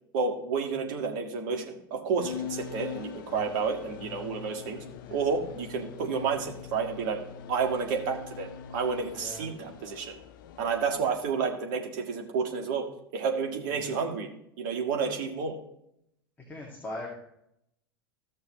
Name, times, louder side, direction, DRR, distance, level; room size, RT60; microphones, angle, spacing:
voice 1, 0.1-4.8 5.1-7.2 7.5-10.2 10.6-12.9 13.1-14.3 14.6-15.6, right 5 dB, 55° right, 3 dB, 1.8 m, -30 dB
sound 1, 2.2-11.3, left 8 dB, 60° left, 0.6 m, -43 dB
voice 2, 9.1-9.5 13.7-13.9 16.5-17.1, left 1 dB, 15° left, -3 dB, 2.2 m, -40 dB
14.5 x 6.5 x 3.1 m, 0.77 s
figure-of-eight pair, 85°, 12 cm